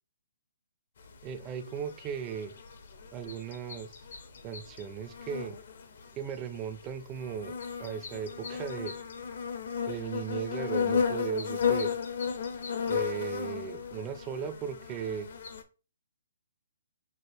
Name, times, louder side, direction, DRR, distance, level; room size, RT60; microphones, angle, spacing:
sound 1, 1.0-15.6, left 6 dB, 50° left, 0.8 m, -34 dB
voice 1, 1.2-2.5 3.1-4.0 4.4-5.6 6.2-8.9 9.9-11.9 12.9-15.3, right 8 dB, 15° right, 8 dB, 0.5 m, -37 dB
6.0 x 2.4 x 3.3 m, 0.33 s
hypercardioid pair, 170°, 0 cm